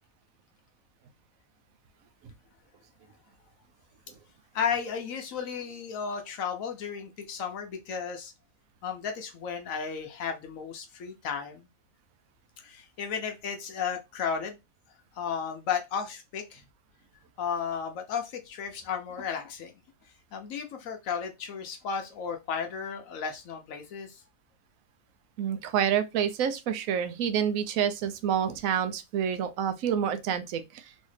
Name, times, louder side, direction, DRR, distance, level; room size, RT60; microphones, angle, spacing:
voice 1, 4.5-8.3 8.8-11.7 12.6-14.6 15.1-16.6 17.4-19.7 20.3-24.2, left 6 dB, 75° left, 1.1 m, -34 dB
voice 2, 25.4-30.9, right 8 dB, 80° right, 1.0 m, -28 dB
3.1 x 2.8 x 3.1 m
omnidirectional pair, 1.4 m